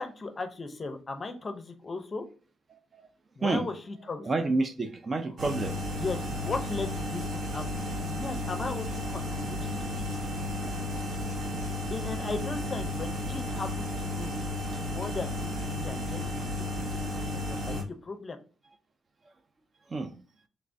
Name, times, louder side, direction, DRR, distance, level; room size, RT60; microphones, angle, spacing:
voice 1, 0.0-2.3 3.4-4.4 6.0-7.7 8.0-10.2 11.9-14.4 14.8-18.4, left 3 dB, 30° left, 7 dB, 0.6 m, -37 dB
voice 2, 4.3-5.7 19.9-20.1, right 3 dB, 35° right, 9 dB, 0.4 m, -29 dB
sound 1, 5.4-17.8, left 1 dB, 60° right, 0.8 m, -33 dB
3.3 x 3.1 x 2.6 m, 0.38 s
cardioid pair, 90°, 0 cm